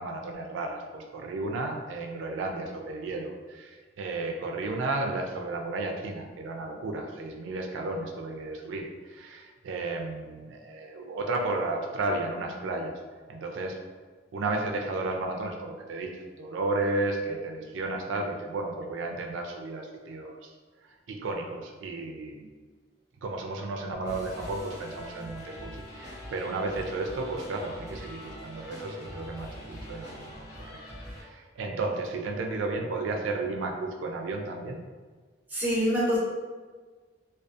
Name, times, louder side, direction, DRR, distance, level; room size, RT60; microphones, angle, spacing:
voice 1, 0.0-13.0 13.3-13.8 14.3-20.5 20.8-22.5 23.2-30.8 31.1-34.8, right 2 dB, 85° right, 2 dB, 0.3 m, -33 dB
sound 1, 24.0-31.2, equal, 65° left, 1.1 m, -43 dB
voice 2, 35.5-36.2, equal, 10° right, -6 dB, 0.7 m, -25 dB
2.5 x 2.3 x 2.3 m, 1.4 s
head